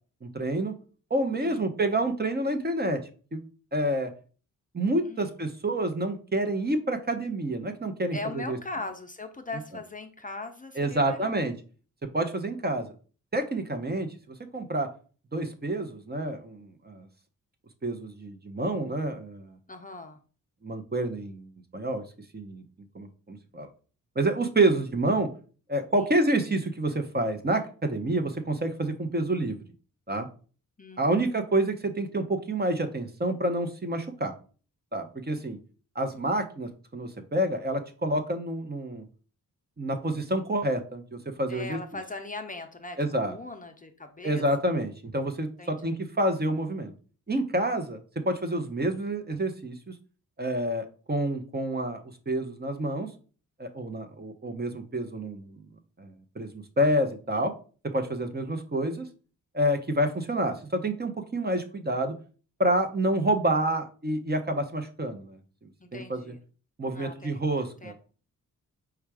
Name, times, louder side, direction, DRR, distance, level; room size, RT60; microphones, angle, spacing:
voice 1, 0.2-0.7 1.1-3.0 3.3-3.4 3.7-4.1 4.7-8.6 10.8-11.5 12.1-12.9 13.3-14.9 15.3-17.1 17.8-19.6 20.6-22.0 22.3-22.6 22.9-23.7 24.2-25.3 25.7-29.6 30.1-30.3 31.0-34.3 34.9-35.6 35.9-39.0 39.8-41.8 43.0-43.4 44.2-46.9 47.3-48.0 48.2-49.9 50.4-52.0 52.3-53.1 53.6-55.6 56.0-57.5 57.9-59.0 59.5-62.1 62.6-66.3 66.8-67.9, right 1 dB, 30° right, 7 dB, 0.8 m, -28 dB
voice 2, 8.1-11.4 19.7-20.2 26.0-26.1 30.8-31.2 41.5-44.4 45.6-46.0 65.8-66.4 66.9-67.4 67.8-67.9, left 3 dB, 25° left, 6 dB, 0.6 m, -40 dB
4.6 x 2.4 x 4.7 m, 0.38 s
cardioid pair, 75°, 34 cm